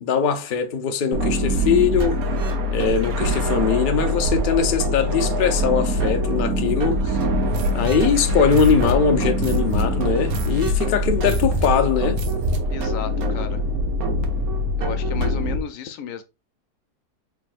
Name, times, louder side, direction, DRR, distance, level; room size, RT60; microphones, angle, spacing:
voice 1, 0.0-2.2 2.7-7.2 7.7-12.2, left 6 dB, 85° left, 0.4 m, -21 dB
sound 1, 1.1-15.6, left 1 dB, 65° right, 1.2 m, -23 dB
sound 2, 7.5-12.9, right 1 dB, 90° right, 1.3 m, -28 dB
voice 2, 12.7-13.6 14.8-16.2, left 8 dB, 70° left, 0.9 m, -33 dB
4.4 x 3.4 x 2.4 m
omnidirectional pair, 1.7 m